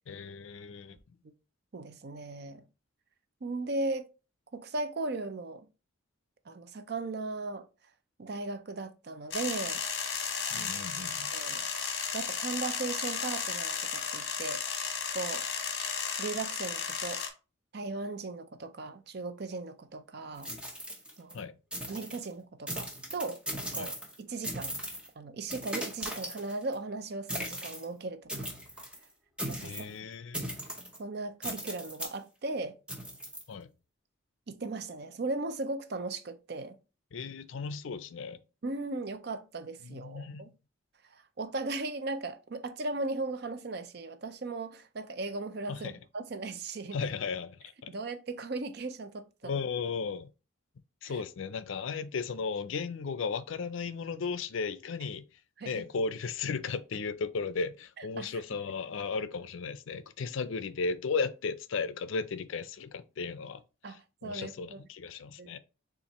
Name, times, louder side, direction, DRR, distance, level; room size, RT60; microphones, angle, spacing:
voice 1, 0.1-1.0 10.5-11.3 21.3-21.5 23.7-23.9 29.6-30.5 33.5-33.7 37.1-38.4 39.8-40.5 45.7-46.0 46.9-47.9 49.4-50.3 51.0-55.2 55.6-63.6 63.9-65.6, left 5 dB, 70° left, 0.4 m, -35 dB
voice 2, 1.7-2.6 3.4-4.1 4.5-5.7 6.5-7.7 8.2-9.8 10.6-10.7 11.3-11.6 12.1-14.6 15.1-15.4 16.2-17.2 17.7-20.5 21.2-21.5 21.9-23.4 23.7-24.7 25.2-28.5 29.5-29.8 31.0-32.8 34.5-36.8 38.6-40.5 41.1-47.0 47.9-49.6 51.0-51.2 55.6-55.9 58.2-58.3 63.8-64.8 65.4-65.6, right 3 dB, 50° right, 0.5 m, -37 dB
sound 1, 9.3-17.3, left 6 dB, 55° left, 1.0 m, -34 dB
sound 2, 20.4-21.4 21.7-22.2 22.7-24.2 24.4-25.1 25.5-26.7 27.3-27.8 28.3-29.0 29.4-29.9 30.3-31.0 31.4-32.2 32.9-33.4, equal, 5° right, 0.7 m, -38 dB
7.0 x 2.5 x 2.9 m
head